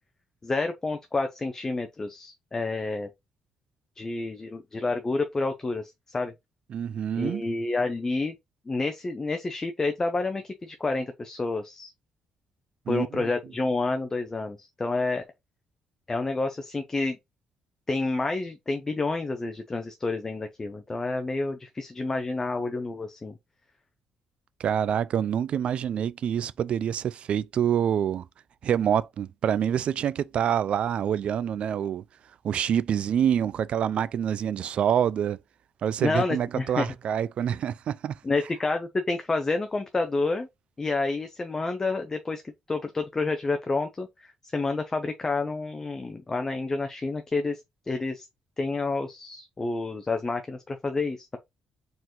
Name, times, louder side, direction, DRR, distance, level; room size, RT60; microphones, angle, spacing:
voice 1, 0.4-3.1 4.0-6.3 7.2-8.3 8.7-11.9 12.9-15.2 16.1-17.2 17.9-23.3 36.0-36.9 38.2-40.5 40.8-42.4 42.7-47.6 47.9-48.3 48.6-51.4, left 3 dB, 20° left, 0.6 m, -29 dB
voice 2, 6.7-7.5 12.9-13.3 24.6-28.3 28.6-32.0 32.4-35.4 35.8-38.2, right 9 dB, 55° right, 0.4 m, -26 dB
4.5 x 3.8 x 3.0 m
cardioid pair, 125°, 2 cm